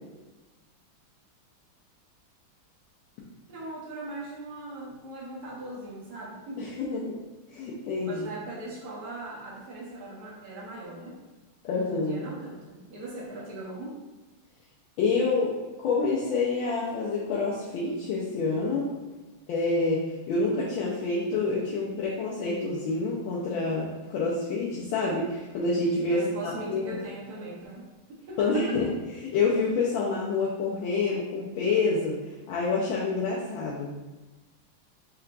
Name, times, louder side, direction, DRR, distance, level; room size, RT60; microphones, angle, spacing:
voice 1, 3.5-6.7 8.0-11.2 11.8-14.0 26.1-28.7, right 2 dB, 55° right, -4 dB, 1.2 m, -40 dB
voice 2, 6.6-7.2 7.5-8.3 11.6-12.2 15.0-18.9 19.5-20.0 20.3-27.0 28.4-28.9 29.2-32.2 32.5-33.9, left 3 dB, 75° left, -6 dB, 1.4 m, -27 dB
4.5 x 3.3 x 2.4 m, 1.2 s
omnidirectional pair, 2.3 m